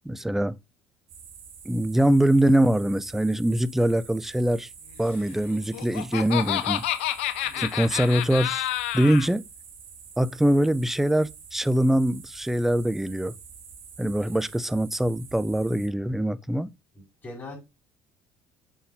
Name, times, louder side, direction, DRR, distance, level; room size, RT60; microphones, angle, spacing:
voice 1, 0.1-0.6 1.7-4.7 5.0-6.8 7.6-8.7 8.9-9.4 10.2-13.3 14.0-16.7, right 1 dB, 5° right, 0.4 m, -23 dB
sound 1, 1.1-15.9, right 6 dB, 65° right, 2.8 m, -47 dB
Laughter, 5.5-9.3, left 13 dB, 85° left, 0.4 m, -29 dB
voice 2, 16.9-17.6, left 2 dB, 25° left, 4.5 m, -42 dB
6.6 x 5.7 x 2.7 m
hypercardioid pair, 75°, 6 cm